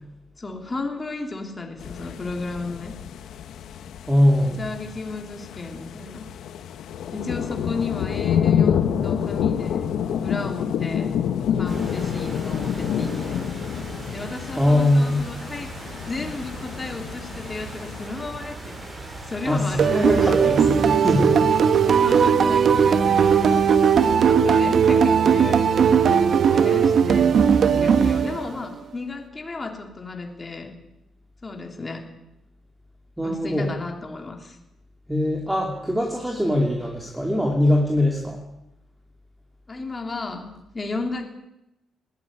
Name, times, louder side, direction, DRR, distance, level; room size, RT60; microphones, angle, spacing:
voice 1, 0.4-3.0 4.4-6.3 7.1-11.2 11.6-13.5 14.1-19.0 19.2-20.6 22.0-23.6 24.0-26.0 26.5-30.8 31.4-32.0 33.2-34.6 39.7-41.3, left 3 dB, 20° left, 3 dB, 3.3 m, -34 dB
sound 1, 1.8-18.1, left 8 dB, 70° left, 1.3 m, -28 dB
voice 2, 4.1-4.6 14.6-15.3 19.5-21.4 33.2-33.7 35.1-38.4, left 1 dB, 5° right, 0 dB, 2.7 m, -21 dB
sound 2, 11.6-24.2, right 2 dB, 25° right, 6.5 m, -38 dB
sound 3, 19.8-28.7, right 7 dB, 50° right, 1.3 m, -18 dB
20.0 x 15.0 x 9.7 m, 0.89 s
cardioid pair, 155°, 0 cm